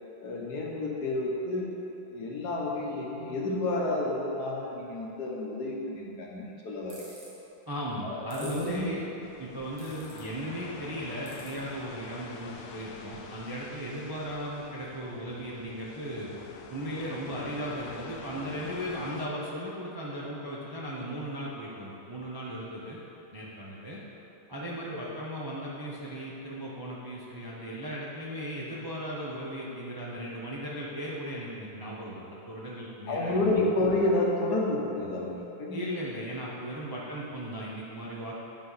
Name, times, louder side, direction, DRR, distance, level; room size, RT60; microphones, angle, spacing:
voice 1, 0.2-7.0 8.0-8.8 33.1-35.8, left 2 dB, 65° left, -2 dB, 1.4 m, -30 dB
sound 1, 6.9-7.3 8.3-8.7 9.8-10.2 11.3-11.5, right 2 dB, 70° right, 2.1 m, -47 dB
voice 2, 7.7-9.1 9.4-16.3 16.7-23.0 23.3-24.0 24.5-33.6 35.7-38.3, equal, 35° right, -6 dB, 0.3 m, -37 dB
sound 2, 9.2-19.3, left 5 dB, 80° left, 1.3 m, -47 dB
10.5 x 4.7 x 4.0 m, 3.0 s
omnidirectional pair, 2.0 m